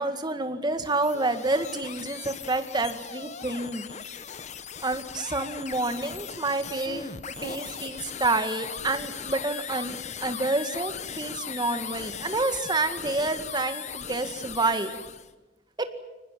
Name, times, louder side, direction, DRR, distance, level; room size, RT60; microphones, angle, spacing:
voice 1, 0.0-3.8 4.8-7.1 7.4-15.0 15.8-15.9, right 2 dB, 25° right, 8 dB, 2.0 m, -28 dB
sound 1, 0.7-15.3, left 7 dB, 45° left, 1.1 m, -38 dB
23.5 x 19.5 x 9.2 m, 1.1 s
head